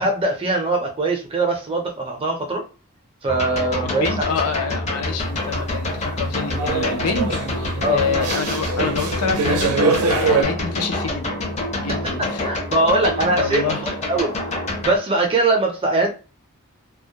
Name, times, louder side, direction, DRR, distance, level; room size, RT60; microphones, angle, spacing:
voice 1, 0.0-2.6 3.2-4.2 7.8-8.0 12.4-14.3 14.8-16.1, right 2 dB, 25° right, 0.5 m, -21 dB
sound 1, 3.3-15.0, left 1 dB, 30° left, 0.5 m, -27 dB
voice 2, 3.8-12.5 13.3-13.8, left 5 dB, 80° left, 0.5 m, -27 dB
sound 2, 6.2-10.4, right 4 dB, 80° right, 0.5 m, -23 dB
2.2 x 2.0 x 2.7 m
head